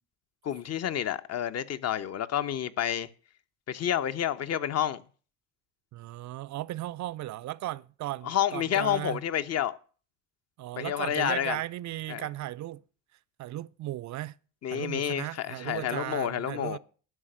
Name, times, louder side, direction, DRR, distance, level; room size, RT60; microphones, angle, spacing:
voice 1, 0.4-3.1 3.7-5.0 8.2-9.8 10.8-11.6 12.1-12.3 14.6-16.8, left 10 dB, 40° left, 0.9 m, -29 dB
voice 2, 5.9-9.2 10.6-12.8 13.4-14.4 14.7-16.8, right 15 dB, 45° right, 0.5 m, -36 dB
11.0 x 5.9 x 9.0 m
supercardioid pair, 105°, 40 cm